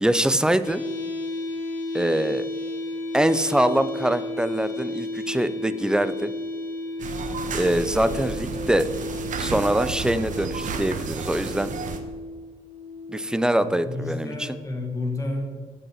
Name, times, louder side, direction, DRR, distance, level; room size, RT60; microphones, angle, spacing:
voice 1, 0.0-0.8 1.9-2.5 3.1-6.3 7.5-8.9 9.4-11.7 13.1-14.5, right 1 dB, 5° right, 13 dB, 0.4 m, -23 dB
sound 1, 0.6-14.6, left 2 dB, 70° left, 1.8 m, -33 dB
sound 2, 7.0-12.0, right 5 dB, 65° right, 0.9 m, -32 dB
voice 2, 13.5-15.4, left 2 dB, 25° left, 2 dB, 1.6 m, -31 dB
9.4 x 8.2 x 4.4 m, 1.5 s
wide cardioid pair, 155°, 14 cm